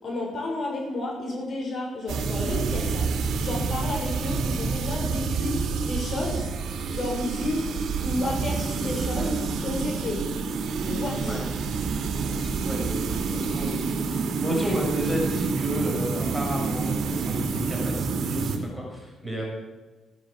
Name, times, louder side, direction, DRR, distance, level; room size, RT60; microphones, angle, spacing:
voice 1, 0.0-3.1 3.4-5.6 5.8-6.5 6.9-7.6 8.0-10.2 10.8-11.4, left 2 dB, 45° left, -1 dB, 6.4 m, -31 dB
sound 1, 2.1-18.6, right 5 dB, 70° right, 2.9 m, -28 dB
voice 2, 12.3-19.4, equal, ahead, -3 dB, 7.0 m, -32 dB
17.5 x 10.5 x 7.8 m, 1.2 s
cardioid pair, 90°, 0 cm